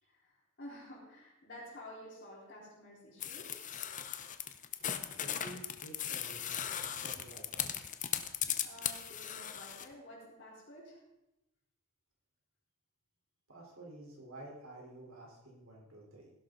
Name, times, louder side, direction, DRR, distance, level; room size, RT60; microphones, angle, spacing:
voice 1, 0.0-3.7 8.6-11.0, equal, 50° left, -9 dB, 4.2 m, -51 dB
sound 1, 3.2-9.9, left 9 dB, 35° left, 0.8 m, -38 dB
voice 2, 5.2-7.7 13.5-16.3, right 2 dB, 70° right, -1 dB, 4.1 m, -51 dB
16.0 x 11.5 x 3.9 m, 0.91 s
head